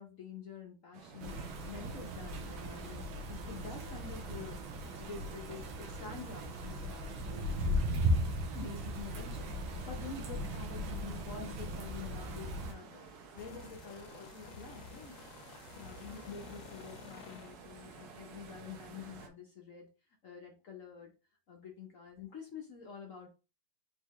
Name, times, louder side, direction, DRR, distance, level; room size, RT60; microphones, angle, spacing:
voice 1, 0.0-1.4 1.7-4.6 5.0-7.8 8.5-15.1 15.8-19.9 20.2-21.1 21.5-23.3, left 5 dB, 50° left, 1 dB, 1.0 m, -48 dB
sound 1, 0.9-19.3, right 5 dB, 60° right, 1.3 m, -53 dB
sound 2, 1.2-12.7, equal, 85° right, 1.7 m, -37 dB
sound 3, 13.4-17.5, left 6 dB, 80° left, 1.4 m, -52 dB
4.4 x 3.9 x 3.1 m, 0.31 s
omnidirectional pair, 2.2 m